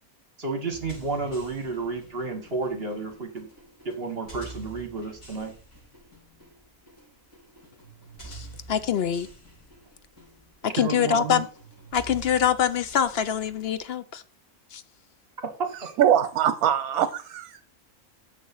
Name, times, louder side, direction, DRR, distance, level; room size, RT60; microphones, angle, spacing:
voice 1, 0.4-3.5 3.8-5.5 10.8-11.4 15.4-15.7, right 4 dB, 45° right, 1.4 m, -31 dB
sound 1, 0.7-13.8, right 3 dB, 90° left, 5.1 m, -48 dB
voice 2, 8.2-9.3 10.6-11.5 11.9-14.2 14.7-14.8, left 9 dB, 60° left, 0.7 m, -25 dB
voice 3, 16.0-17.6, right 10 dB, 75° right, 1.1 m, -22 dB
7.3 x 6.3 x 5.7 m
omnidirectional pair, 1.6 m